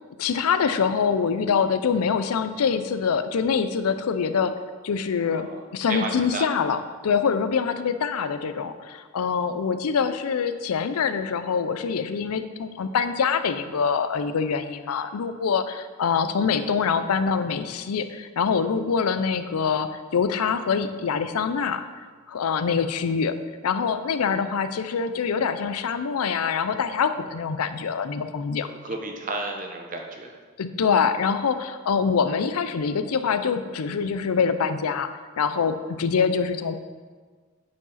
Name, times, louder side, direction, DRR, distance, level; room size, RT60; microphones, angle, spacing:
voice 1, 0.2-4.5 4.8-21.8 22.3-23.4 23.6-28.7 30.6-35.1 35.4-36.7, left 6 dB, 90° left, 11 dB, 0.5 m, -25 dB
voice 2, 5.9-6.5 28.6-30.4, right 2 dB, 35° right, 2 dB, 0.8 m, -32 dB
8.6 x 4.8 x 4.1 m, 1.5 s
head